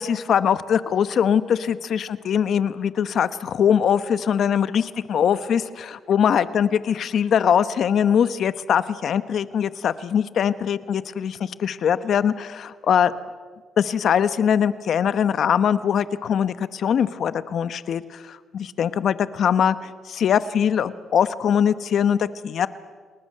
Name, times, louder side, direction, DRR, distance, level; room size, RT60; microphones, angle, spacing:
voice 1, 0.0-13.1 13.8-19.8 20.1-22.7, left 8 dB, 65° left, 13 dB, 1.0 m, -22 dB
29.0 x 19.5 x 6.7 m, 1.5 s
cardioid pair, 90°, 0 cm